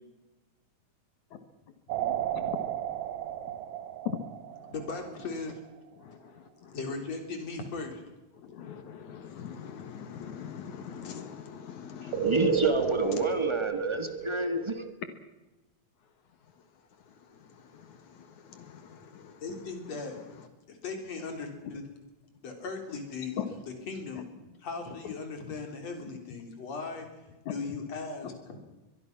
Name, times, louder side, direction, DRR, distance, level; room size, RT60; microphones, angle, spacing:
sound 1, 1.9-5.3 12.1-14.9, right 9 dB, 75° right, 2.3 m, -32 dB
voice 1, 2.0-2.6 4.1-4.2 6.0-6.8 8.4-12.6 13.1-13.4 17.4-19.4 23.4-23.5, left 9 dB, 75° left, 9 dB, 3.0 m, -41 dB
voice 2, 4.7-5.6 6.7-8.0 19.4-20.1 20.7-21.8 22.4-23.6 23.9-24.3 24.6-27.1 27.5-28.6, left 4 dB, 60° left, 4 dB, 4.6 m, -38 dB
voice 3, 12.0-14.8, right 1 dB, 45° right, 7 dB, 0.3 m, -30 dB
23.0 x 22.0 x 6.0 m, 1.0 s
omnidirectional pair, 3.4 m